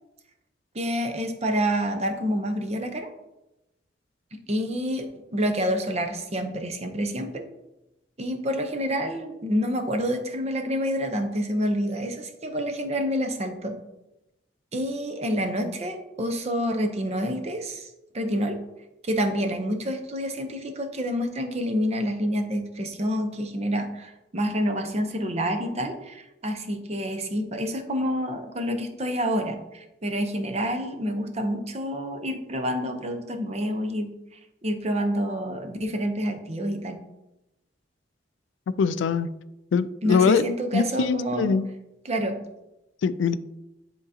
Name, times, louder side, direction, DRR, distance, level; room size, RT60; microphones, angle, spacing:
voice 1, 0.7-3.1 4.3-5.1 5.3-7.5 8.2-13.8 14.7-18.6 19.0-34.1 34.6-37.0 40.0-41.5 42.0-42.4, equal, 35° right, 0.7 m, -28 dB
voice 2, 38.8-39.3 39.7-40.5 40.7-41.7 43.0-43.3, left 6 dB, 80° left, 0.3 m, -22 dB
9.7 x 3.8 x 2.8 m
head